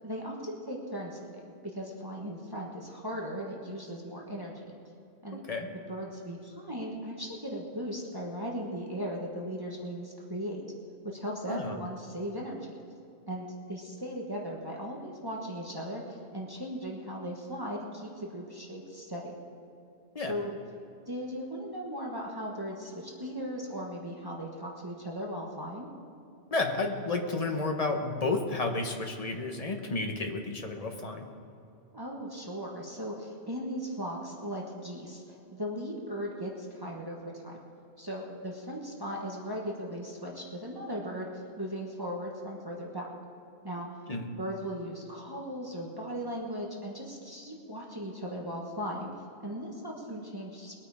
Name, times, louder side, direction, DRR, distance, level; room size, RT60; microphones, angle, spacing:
voice 1, 0.0-4.8 5.2-5.4 5.9-10.7 11.0-12.8 13.3-19.4 20.3-20.6 21.1-25.9 31.9-37.6 38.0-43.1 43.6-43.9 44.4-49.1 49.4-50.8, equal, 20° right, -2 dB, 1.4 m, -38 dB
voice 2, 5.3-5.7 11.5-11.8 20.1-20.3 26.5-31.3 44.1-44.3, left 3 dB, 35° left, 3 dB, 1.3 m, -31 dB
21.5 x 8.9 x 4.9 m, 2.7 s
omnidirectional pair, 1.1 m